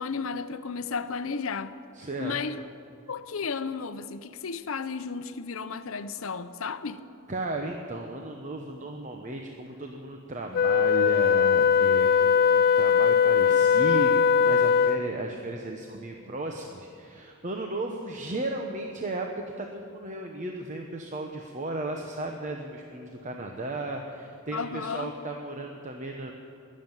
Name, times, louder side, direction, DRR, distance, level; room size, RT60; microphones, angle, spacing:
voice 1, 0.0-1.7 2.2-2.6 3.1-7.0 24.5-25.1, left 5 dB, 65° left, 0.7 m, -33 dB
voice 2, 2.0-2.4 6.2-6.3 7.3-26.3, right 2 dB, 35° right, 0.9 m, -35 dB
Wind instrument woodwind instrument, 10.5-15.2, left 7 dB, 45° left, 0.3 m, -20 dB
20.5 x 7.6 x 9.0 m
head